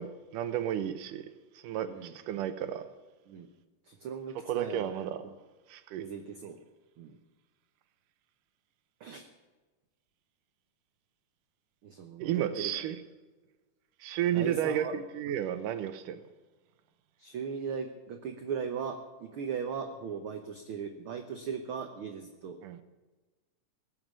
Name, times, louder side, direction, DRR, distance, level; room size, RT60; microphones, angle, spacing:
voice 1, 0.0-2.9 4.5-5.2 5.7-6.1 12.2-13.0 14.0-16.2 22.6-22.8, right 10 dB, 85° right, 2.5 m, -32 dB
voice 2, 1.8-2.1 3.3-3.5 3.8-4.9 6.0-6.6 7.0-7.2 9.0-9.3 11.8-12.7 14.3-14.9 17.2-22.6, right 6 dB, 65° right, 1.3 m, -38 dB
19.0 x 7.9 x 7.5 m
omnidirectional pair, 3.7 m